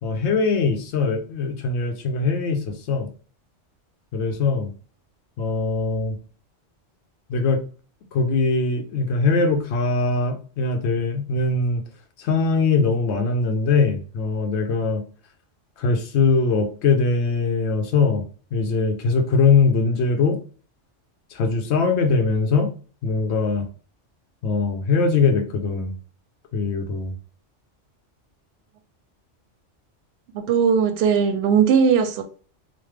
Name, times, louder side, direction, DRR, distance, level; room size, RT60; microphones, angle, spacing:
voice 1, 0.0-3.1 4.1-4.7 5.4-6.2 7.3-7.6 8.1-11.8 12.2-15.0 15.8-18.2 18.5-20.4 21.3-22.7 23.0-23.6 24.4-26.0 26.5-27.1, left 4 dB, 70° left, 0.9 m, -21 dB
voice 2, 30.3-32.2, right 6 dB, 65° right, 0.7 m, -18 dB
3.1 x 2.1 x 3.2 m
omnidirectional pair, 1.2 m